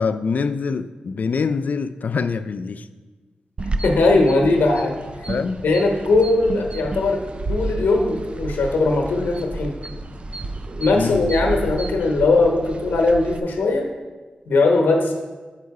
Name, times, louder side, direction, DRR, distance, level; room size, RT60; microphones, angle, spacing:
voice 1, 0.0-2.9 5.3-5.6 10.9-11.2, left 5 dB, 60° left, 12 dB, 0.3 m, -24 dB
sound 1, 3.6-13.4, right 2 dB, 40° right, 0.4 m, -31 dB
voice 2, 3.8-4.9 5.2-5.3 5.6-7.2 7.5-9.7 10.8-13.9 14.5-15.1, left 3 dB, 90° left, 2 dB, 0.9 m, -19 dB
6.6 x 4.7 x 4.7 m, 1.3 s
cardioid pair, 65°, 3 cm